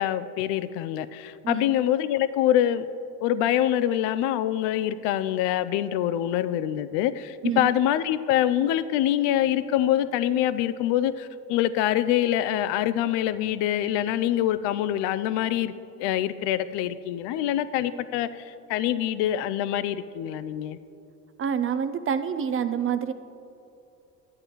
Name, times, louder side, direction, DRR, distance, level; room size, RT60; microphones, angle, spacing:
voice 1, 0.0-2.9 3.2-15.7 16.0-20.8, left 12 dB, 65° left, 14 dB, 0.5 m, -25 dB
voice 2, 1.4-1.8 7.4-7.7 21.4-23.1, right 8 dB, 30° right, 11 dB, 0.4 m, -27 dB
12.5 x 8.6 x 3.0 m, 2.7 s
hypercardioid pair, 65°, 45 cm